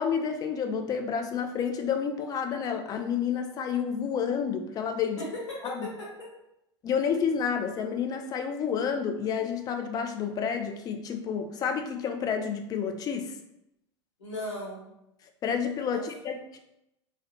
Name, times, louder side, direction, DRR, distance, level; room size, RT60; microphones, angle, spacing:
voice 1, 0.0-5.2 5.7-5.9 6.8-13.3 15.4-16.6, left 7 dB, 25° left, 6 dB, 0.3 m, -30 dB
voice 2, 5.2-6.3 14.2-14.9 15.9-16.0, left 1 dB, 80° left, -5 dB, 1.1 m, -37 dB
2.5 x 2.0 x 2.6 m, 0.85 s
figure-of-eight pair, 90°, 15 cm